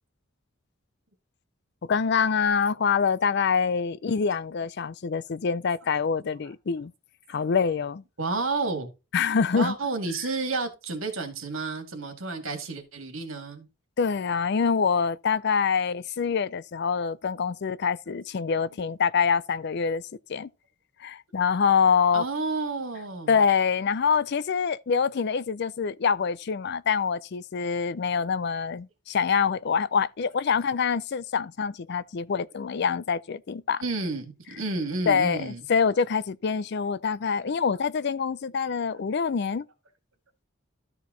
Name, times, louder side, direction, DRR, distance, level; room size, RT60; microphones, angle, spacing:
voice 1, 1.8-6.9 7.3-8.0 9.1-9.7 14.0-20.0 20.3-20.5 21.0-22.2 23.3-33.8 35.1-39.6, left 6 dB, 55° left, 0.4 m, -25 dB
voice 2, 8.2-8.9 9.5-13.7 22.1-23.3 33.8-35.6 37.4-37.6, right 3 dB, 80° right, 2.3 m, -31 dB
13.0 x 4.7 x 3.9 m
head